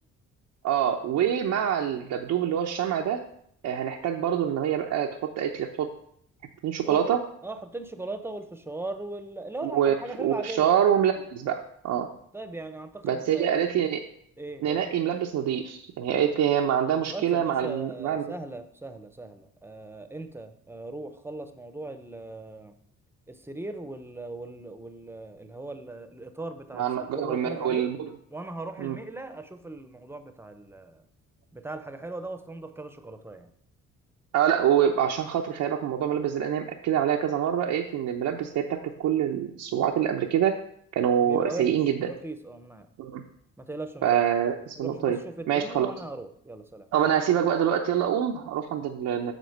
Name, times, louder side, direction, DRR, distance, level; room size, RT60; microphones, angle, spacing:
voice 1, 0.6-3.2 3.6-5.9 6.6-7.2 9.6-12.1 13.0-14.0 14.6-18.3 26.7-28.1 28.8-29.0 34.3-40.6 40.9-42.1 43.0-43.2 44.0-45.2 45.5-45.9 46.9-49.3, right 9 dB, 80° right, 0 dB, 0.7 m, -25 dB
voice 2, 6.9-7.2 7.4-10.7 12.3-13.6 14.4-14.8 17.1-22.8 23.3-27.9 28.3-31.0 31.5-33.5 41.3-41.7 42.0-42.9 43.6-44.2 44.8-46.9, right 2 dB, 10° right, 9 dB, 0.8 m, -38 dB
8.1 x 3.9 x 6.6 m, 0.67 s
cardioid pair, 90°, 30 cm